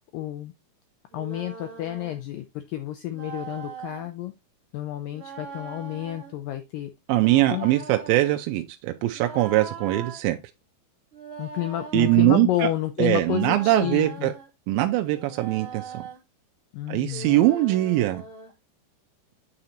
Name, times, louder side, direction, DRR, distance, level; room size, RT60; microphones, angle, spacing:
voice 1, 0.1-0.5 1.1-4.3 4.7-6.9 7.5-7.7 11.4-14.3 16.7-17.4, left 14 dB, 85° left, 1.9 m, -30 dB
sound 1, 1.1-2.2 3.1-4.1 5.1-6.3 7.1-8.4 9.1-10.2 11.1-12.3 13.1-14.5 15.1-16.2 17.1-18.5, right 4 dB, 25° right, 2.0 m, -40 dB
voice 2, 7.1-10.4 11.9-12.7 13.0-14.3 14.7-16.0 16.9-18.2, right 16 dB, 80° right, 2.2 m, -22 dB
8.8 x 4.1 x 2.8 m
omnidirectional pair, 4.6 m